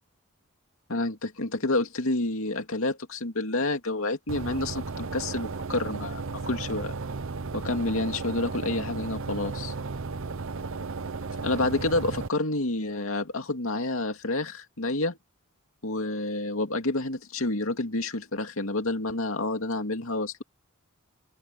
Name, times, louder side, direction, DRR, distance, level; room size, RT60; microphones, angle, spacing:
voice 1, 0.9-6.9 7.5-9.7 11.4-15.2 15.8-20.4, left 2 dB, 75° left, 2.5 m, -29 dB
sound 1, 4.3-12.3, right 4 dB, 65° right, 0.8 m, -34 dB
head